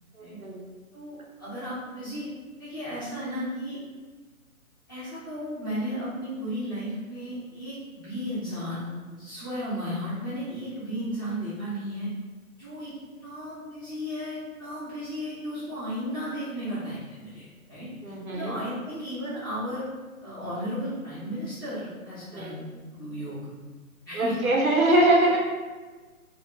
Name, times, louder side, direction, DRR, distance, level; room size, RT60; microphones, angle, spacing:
voice 1, 0.2-0.6 18.0-18.6 22.3-22.5 24.1-25.4, right 1 dB, 70° right, -2 dB, 0.9 m, -23 dB
voice 2, 0.9-2.3 2.6-3.8 4.9-12.1 12.6-19.9 20.2-22.7 22.9-23.4 24.0-25.0, equal, 15° left, -14 dB, 0.5 m, -34 dB
3.0 x 2.0 x 3.3 m, 1.3 s
figure-of-eight pair, 140°, 43 cm